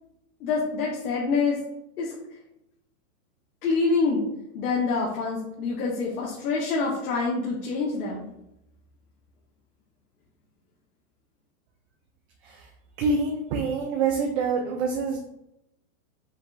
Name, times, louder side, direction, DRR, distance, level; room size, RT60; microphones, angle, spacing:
voice 1, 0.4-1.6 2.0-2.1 3.6-4.2 4.5-8.3, left 4 dB, 80° left, -4 dB, 1.2 m, -26 dB
voice 2, 13.0-15.3, right 4 dB, 45° right, 2 dB, 0.7 m, -26 dB
5.4 x 2.5 x 3.4 m, 0.83 s
supercardioid pair, 140°, 44 cm